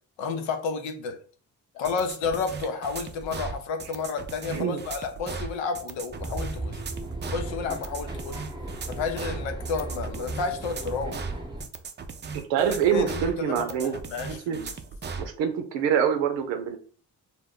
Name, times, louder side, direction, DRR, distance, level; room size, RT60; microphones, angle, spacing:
voice 1, 0.2-1.2 1.7-6.8 7.3-8.4 8.9-11.2 12.7-14.7, left 5 dB, 85° left, 6 dB, 0.7 m, -31 dB
sound 1, 1.8-15.3, right 5 dB, 25° right, 0.4 m, -37 dB
voice 2, 4.5-4.8 12.3-13.9 14.5-14.6 15.2-16.8, right 8 dB, 90° right, 7 dB, 0.6 m, -25 dB
sound 2, 6.1-11.6, right 2 dB, 10° right, 0.8 m, -36 dB
2.2 x 2.1 x 3.7 m, 0.42 s
supercardioid pair, 55°, 44 cm